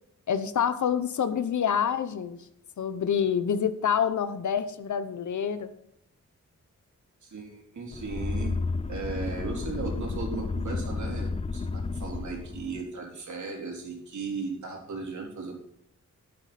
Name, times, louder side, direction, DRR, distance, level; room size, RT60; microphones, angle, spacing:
voice 1, 0.3-2.4 2.8-5.7, left 8 dB, 80° left, 12 dB, 0.9 m, -27 dB
voice 2, 7.2-8.5 8.9-15.5, right 4 dB, 75° right, 0 dB, 4.0 m, -36 dB
sound 1, 7.9-12.8, left 4 dB, 20° left, 0.5 m, -32 dB
11.5 x 9.0 x 4.3 m, 0.72 s
wide cardioid pair, 145°, 29 cm